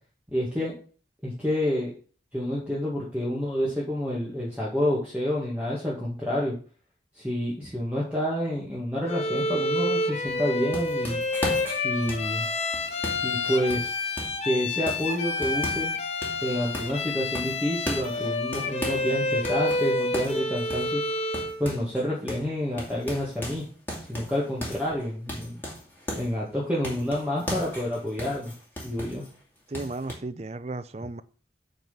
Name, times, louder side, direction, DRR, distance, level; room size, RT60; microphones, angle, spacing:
voice 1, 0.3-0.7 1.2-1.9 2.3-6.5 7.2-11.2 11.8-12.5 13.2-14.0 14.5-16.0 16.4-21.0 21.6-23.6 24.1-25.6 26.2-28.5 28.8-29.2, equal, 10° right, 2.0 m, -28 dB
Bowed string instrument, 9.1-21.6, left 2 dB, 40° left, 1.0 m, -29 dB
sound 1, 10.3-14.5 14.9-16.0 16.2-17.0 17.4-19.1 19.4-22.0 22.3-22.5 22.8-26.4 26.8-29.3 29.7-30.2, equal, 10° left, 2.5 m, -37 dB
voice 2, 29.7-31.2, right 2 dB, 35° right, 0.6 m, -34 dB
9.0 x 4.0 x 6.9 m
head